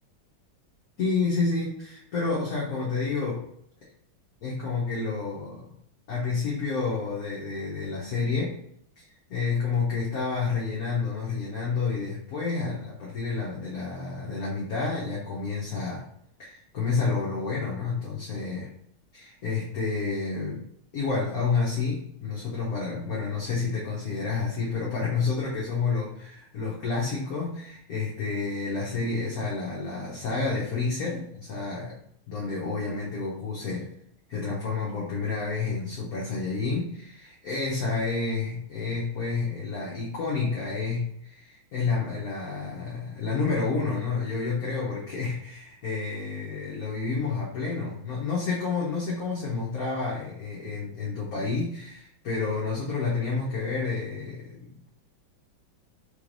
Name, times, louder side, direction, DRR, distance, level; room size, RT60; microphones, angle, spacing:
voice 1, 1.0-3.4 4.4-5.7 6.1-8.5 9.0-9.1 9.3-16.0 16.4-18.7 19.1-20.6 20.9-32.0 32.3-33.9 34.3-54.9, left 4 dB, 60° left, -5 dB, 1.0 m, -29 dB
3.9 x 3.1 x 2.6 m, 0.70 s
omnidirectional pair, 2.3 m